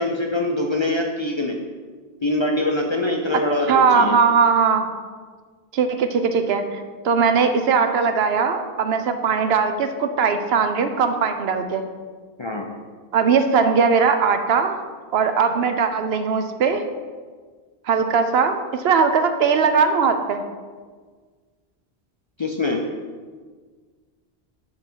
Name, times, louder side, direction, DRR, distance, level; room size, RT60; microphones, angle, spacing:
voice 1, 0.0-1.6 2.2-4.2 12.4-12.7 22.4-22.8, left 2 dB, 40° left, 1 dB, 0.4 m, -23 dB
voice 2, 3.7-4.9 5.7-11.8 13.1-14.8 15.1-16.8 17.9-20.4, right 5 dB, 75° right, 8 dB, 0.8 m, -19 dB
6.6 x 5.4 x 4.5 m, 1.5 s
omnidirectional pair, 1.1 m